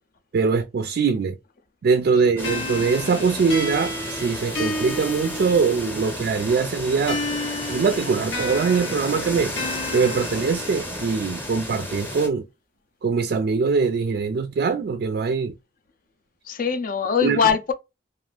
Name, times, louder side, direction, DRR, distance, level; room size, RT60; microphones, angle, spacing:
voice 1, 0.3-1.4 1.8-7.2 7.6-9.6 9.9-12.4 13.0-15.5 17.2-17.4, right 5 dB, 55° right, 0.3 m, -22 dB
voice 2, 2.1-2.6 16.4-17.7, left 6 dB, 50° left, 0.4 m, -23 dB
sound 1, 2.4-6.1 7.1-11.1, left 1 dB, 90° left, 0.9 m, -32 dB
sound 2, 2.4-12.3, left 1 dB, 10° left, 0.7 m, -33 dB
2.4 x 2.4 x 3.2 m
head